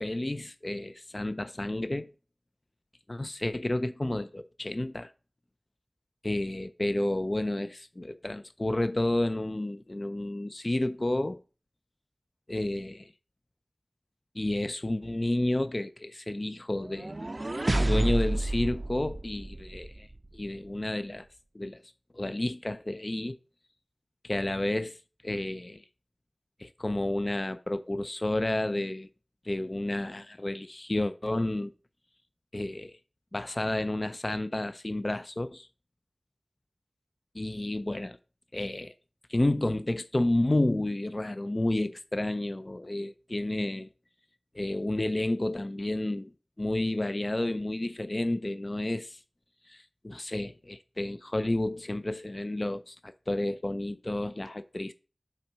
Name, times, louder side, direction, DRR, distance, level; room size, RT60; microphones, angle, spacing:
voice 1, 0.0-2.1 3.1-5.1 6.2-11.4 12.5-13.1 14.4-17.1 17.7-20.1 20.3-21.3 21.5-21.8 22.1-23.4 24.2-25.8 26.6-29.1 29.5-31.7 32.5-33.0 33.3-35.7 37.3-38.2 38.5-38.9 39.3-43.9 44.5-46.3 46.6-49.2 49.7-54.9, left 1 dB, 45° left, 0.5 m, -31 dB
sound 1, 16.8-20.0, right 1 dB, 50° right, 0.4 m, -29 dB
5.8 x 4.4 x 6.0 m
wide cardioid pair, 40°, 0 cm